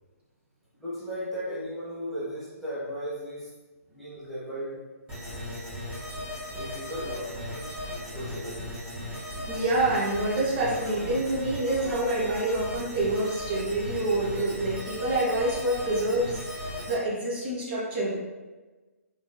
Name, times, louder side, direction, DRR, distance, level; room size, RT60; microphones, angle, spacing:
voice 1, 0.8-3.5 3.9-4.8 6.5-7.7 8.1-8.7 15.8-15.9, equal, ahead, -12 dB, 0.8 m, -36 dB
sound 1, 5.1-16.9, left 1 dB, 15° right, 1.3 m, -37 dB
voice 2, 9.5-18.2, right 2 dB, 45° right, -7 dB, 1.5 m, -27 dB
3.7 x 2.9 x 2.2 m, 1.2 s
figure-of-eight pair, 135°, 8 cm